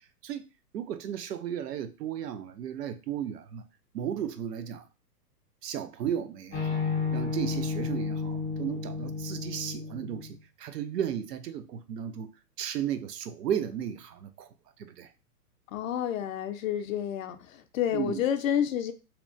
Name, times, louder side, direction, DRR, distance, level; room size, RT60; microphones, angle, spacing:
voice 1, 0.7-3.6 3.9-4.9 5.6-6.8 7.1-12.3 12.6-14.5 14.8-15.1 17.9-18.3, right 9 dB, 85° right, 0.6 m, -34 dB
sound 1, 6.5-10.3, left 4 dB, 10° left, 0.4 m, -32 dB
voice 2, 15.7-17.4 17.7-18.9, left 9 dB, 60° left, 0.5 m, -29 dB
2.8 x 2.1 x 2.5 m
hypercardioid pair, 125°, 47 cm